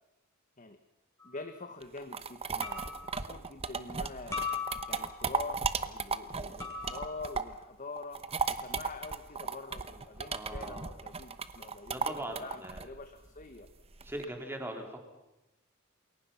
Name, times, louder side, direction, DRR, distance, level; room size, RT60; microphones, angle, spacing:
voice 1, 1.2-4.4 4.9-13.7, left 3 dB, 35° left, 7 dB, 1.3 m, -45 dB
sound 1, 1.2-1.5 2.6-3.1 4.3-5.2 6.6-7.2, left 5 dB, 15° left, 5.3 m, -38 dB
sound 2, 1.8-7.6 8.0-14.2, right 5 dB, 30° right, 1.0 m, -35 dB
voice 2, 10.3-10.9 11.9-12.8 14.0-15.0, right 1 dB, 10° right, 3 dB, 3.7 m, -40 dB
28.5 x 22.0 x 5.7 m, 0.96 s
head